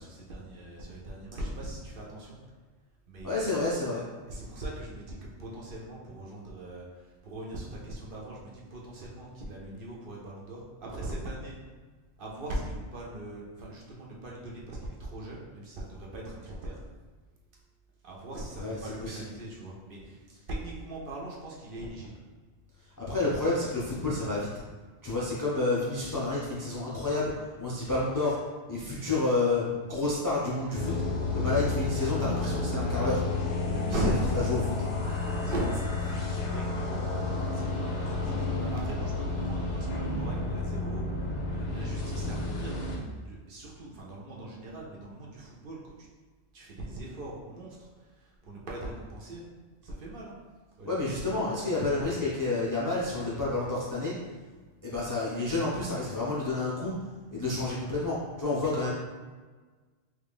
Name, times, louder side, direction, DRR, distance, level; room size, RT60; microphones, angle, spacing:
voice 1, 0.0-2.4 3.1-3.7 4.3-11.6 12.2-16.8 18.0-22.1 33.8-34.4 35.0-41.0 41.5-46.1 46.5-49.4 49.8-50.4 50.8-51.5, right 1 dB, 60° right, -3 dB, 0.8 m, -39 dB
voice 2, 3.2-4.0 18.6-19.2 23.0-24.5 25.0-27.3 27.6-28.4 28.7-30.9 31.3-33.2 34.0-34.1 34.5-34.6 50.9-54.1 54.8-56.9 57.3-58.9, left 2 dB, 30° left, -7 dB, 0.3 m, -29 dB
sound 1, 30.7-43.0, left 3 dB, 80° left, 1.0 m, -31 dB
3.2 x 2.4 x 3.5 m, 1.4 s
omnidirectional pair, 1.2 m